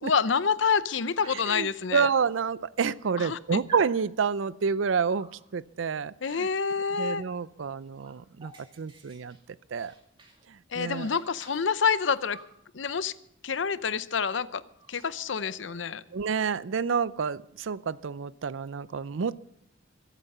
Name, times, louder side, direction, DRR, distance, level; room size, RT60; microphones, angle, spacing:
voice 1, 0.0-2.1 3.2-3.6 6.2-7.2 10.7-12.4 12.7-13.1 13.4-14.6 14.9-16.0, left 6 dB, 75° left, 15 dB, 0.7 m, -27 dB
Dog, 1.2-1.6 2.5-2.6 2.8-3.3 3.7-4.0 5.1-5.4 7.3-7.4 7.7-10.4 10.7-12.6 13.9-14.0 14.3-14.5 14.7-16.0, right 2 dB, 25° right, 2.3 m, -52 dB
voice 2, 1.5-6.5 7.0-8.5 8.8-9.4 9.7-9.9 10.8-11.1 16.1-19.4, right 6 dB, 85° right, 18 dB, 0.5 m, -29 dB
23.5 x 8.2 x 5.5 m, 0.74 s
head